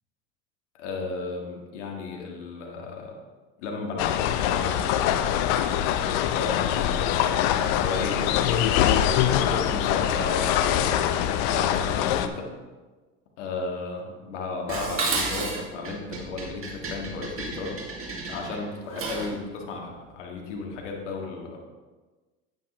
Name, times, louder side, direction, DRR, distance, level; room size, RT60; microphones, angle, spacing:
voice 1, 0.7-3.2 3.6-5.1 6.0-7.1 7.7-8.7 9.3-11.1 11.4-12.5 13.4-17.8 18.3-21.6, left 3 dB, 80° left, 1 dB, 1.8 m, -34 dB
sound 1, 4.0-12.3, left 10 dB, 65° left, 0.7 m, -24 dB
Dishes pots and pans, 14.7-19.4, right 3 dB, 35° right, 2.4 m, -32 dB
9.3 x 9.2 x 3.2 m, 1.3 s
hypercardioid pair, 75°, 36 cm